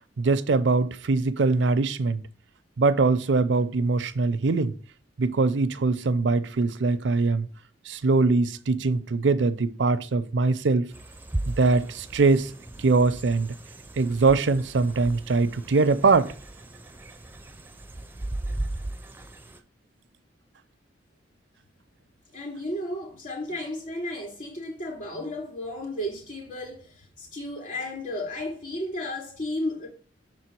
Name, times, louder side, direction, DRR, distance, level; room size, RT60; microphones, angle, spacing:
voice 1, 0.2-2.2 2.8-4.8 5.2-7.5 7.9-10.9 11.5-12.5 12.8-13.5 14.0-16.3, right 3 dB, 75° right, 0.5 m, -22 dB
sound 1, 10.9-19.6, right 1 dB, 10° right, 0.4 m, -37 dB
voice 2, 22.3-29.9, left 1 dB, 45° left, 2.4 m, -33 dB
6.5 x 3.8 x 4.5 m
head